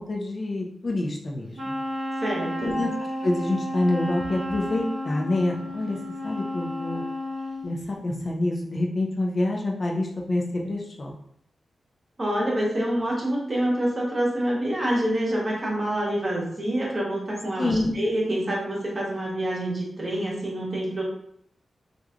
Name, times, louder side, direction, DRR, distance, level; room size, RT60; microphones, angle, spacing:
voice 1, 0.0-1.7 2.6-2.9 3.2-6.0 6.2-7.0 7.6-11.1 17.6-17.9, left 2 dB, 45° left, 0 dB, 0.5 m, -27 dB
Wind instrument woodwind instrument, 1.5-7.7, equal, 55° right, 0.8 m, -32 dB
voice 2, 2.2-2.8 12.2-21.0, right 1 dB, 30° right, -3 dB, 0.9 m, -26 dB
3.1 x 2.4 x 2.4 m, 0.69 s
wide cardioid pair, 110°, 0 cm